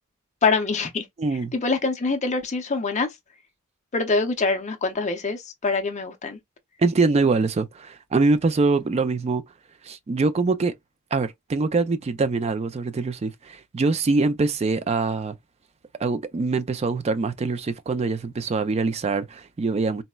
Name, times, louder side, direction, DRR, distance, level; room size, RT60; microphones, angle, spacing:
voice 1, 0.4-1.0 1.5-3.1 3.9-6.4, left 4 dB, 30° left, 0.5 m, -24 dB
voice 2, 1.2-1.5 6.8-9.4 9.8-10.7 11.1-15.3 16.0-20.0, right 3 dB, 30° right, 0.3 m, -24 dB
4.0 x 2.0 x 2.2 m
head